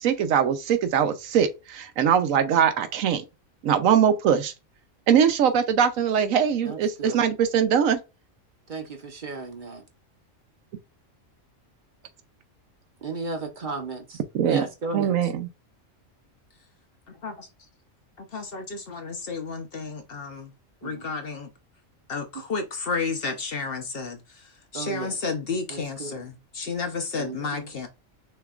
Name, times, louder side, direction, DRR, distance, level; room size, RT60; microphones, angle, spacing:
voice 1, 0.0-3.2 3.6-4.5 5.1-8.0 14.3-14.7 14.9-15.5, right 8 dB, 85° right, 1.1 m, -22 dB
voice 2, 6.6-7.3 8.7-9.8 13.0-14.2 14.5-15.2 20.8-21.1 24.7-25.2 25.7-26.2 27.1-27.7, right 3 dB, 40° right, 0.9 m, -34 dB
voice 3, 18.2-20.5 20.8-21.5 22.1-24.2 24.7-27.9, left 4 dB, 50° left, 0.8 m, -31 dB
6.4 x 2.9 x 2.4 m
omnidirectional pair, 1.4 m